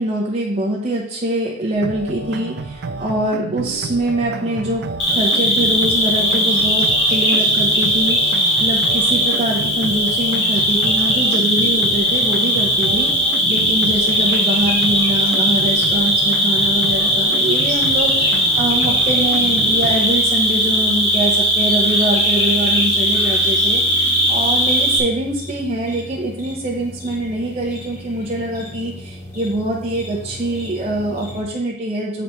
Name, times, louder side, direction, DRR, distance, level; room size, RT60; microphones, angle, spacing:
voice 1, 0.0-4.8 5.1-32.2, right 1 dB, 35° right, -4 dB, 0.9 m, -24 dB
sound 1, 1.7-20.0, right 3 dB, 55° right, 0.4 m, -30 dB
Cricket, 5.0-25.0, equal, 65° left, 2.0 m, -18 dB
sound 2, 17.7-31.4, left 1 dB, 40° left, 2.9 m, -36 dB
8.1 x 4.2 x 4.4 m, 0.69 s
head